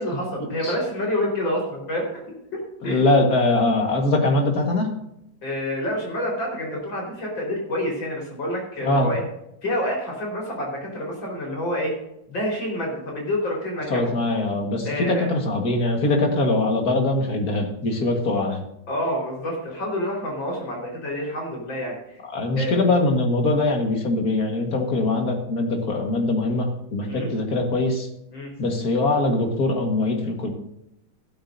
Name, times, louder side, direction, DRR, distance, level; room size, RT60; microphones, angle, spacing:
voice 1, 0.0-2.2 2.5-3.0 5.4-9.2 9.6-11.9 12.3-14.1 14.8-15.3 18.9-22.2 22.6-22.8 27.1-27.3 28.3-28.5, left 1 dB, 85° left, -1 dB, 5.4 m, -28 dB
voice 2, 2.8-4.9 8.8-9.1 13.9-18.6 22.2-28.1 28.6-30.5, left 2 dB, 50° left, 3 dB, 2.2 m, -22 dB
14.5 x 13.0 x 2.7 m, 0.81 s
omnidirectional pair, 2.0 m